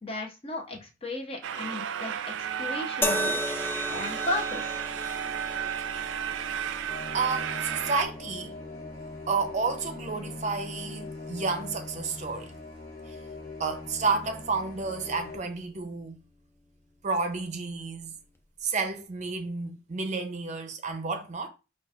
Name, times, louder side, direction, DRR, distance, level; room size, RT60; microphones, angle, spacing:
voice 1, 0.0-3.4 3.9-4.8, left 2 dB, 30° left, 0.7 m, -35 dB
sound 1, 1.4-8.0, right 9 dB, 85° right, 0.3 m, -33 dB
sound 2, 3.0-16.3 17.3-17.5, left 2 dB, 10° left, 0.4 m, -39 dB
sound 3, 6.8-15.4, left 2 dB, 55° left, 1.1 m, -41 dB
voice 2, 7.1-8.6 9.3-12.5 13.1-13.2 13.6-16.2 17.0-18.2 18.6-21.5, right 4 dB, 40° right, 0.6 m, -31 dB
5.7 x 2.4 x 2.4 m
head